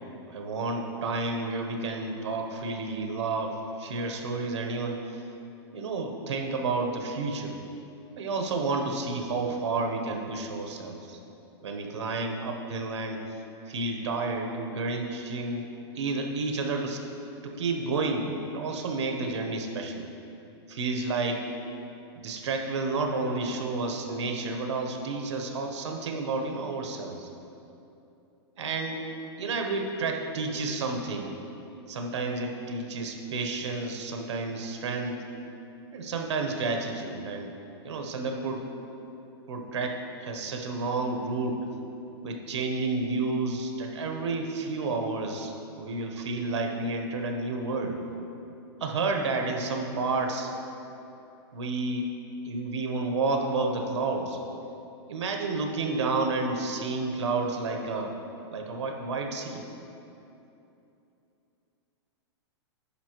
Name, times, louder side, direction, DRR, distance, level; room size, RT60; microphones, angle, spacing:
voice 1, 0.3-5.2 5.7-7.6 8.2-11.2 11.6-13.4 13.7-17.0 17.4-20.0 20.7-21.4 22.2-27.3 28.6-29.0 29.4-31.3 31.9-35.2 35.9-37.5 37.8-38.7 39.5-41.6 42.2-48.0 48.8-50.5 51.5-52.1 52.4-54.4 55.1-58.2 58.5-59.7, right 3 dB, 85° right, 3 dB, 1.0 m, -30 dB
9.8 x 6.3 x 3.0 m, 2.9 s
supercardioid pair, 160°, 14 cm